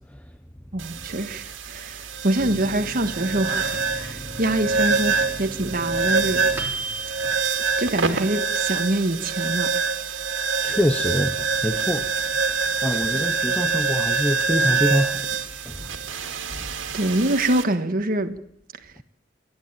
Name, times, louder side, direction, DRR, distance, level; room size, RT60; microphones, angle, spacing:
voice 1, 0.7-6.4 7.8-9.7 16.9-18.4, right 1 dB, 50° right, 1.5 m, -25 dB
sound 1, 0.8-17.6, right 4 dB, 85° right, 2.3 m, -26 dB
Microwave oven, 2.3-8.4 8.8-8.9 9.2-9.8, right 2 dB, 10° right, 3.8 m, -37 dB
voice 2, 10.6-12.1 12.8-15.3 15.7-15.9 16.3-16.4, equal, 10° left, 0.8 m, -25 dB
28.5 x 11.0 x 9.2 m
head